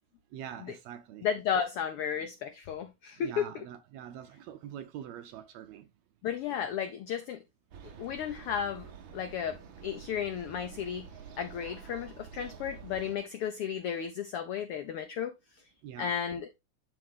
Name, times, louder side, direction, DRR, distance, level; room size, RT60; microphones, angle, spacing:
voice 1, 0.3-1.3 3.2-5.9 15.8-16.1, right 9 dB, 75° right, 1.6 m, -44 dB
voice 2, 1.2-3.6 6.2-7.4 8.0-8.9 9.1-11.1 11.4-15.3 16.0-16.5, left 8 dB, 85° left, 1.2 m, -33 dB
sound 1, 7.7-13.2, right 7 dB, 60° right, 1.3 m, -48 dB
11.5 x 3.8 x 3.6 m
omnidirectional pair, 3.4 m